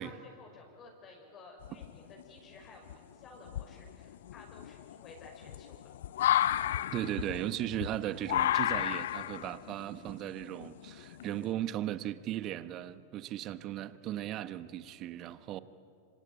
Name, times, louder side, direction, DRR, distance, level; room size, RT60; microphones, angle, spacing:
voice 1, 0.0-5.8, left 3 dB, 35° left, 1 dB, 6.0 m, -54 dB
sound 1, 1.6-2.2 2.9-3.0 3.5-11.5, left 12 dB, 70° left, 0.6 m, -32 dB
voice 2, 6.9-15.6, right 12 dB, 40° right, 14 dB, 1.2 m, -37 dB
26.0 x 26.0 x 8.8 m, 2.5 s
hypercardioid pair, 95°, 0 cm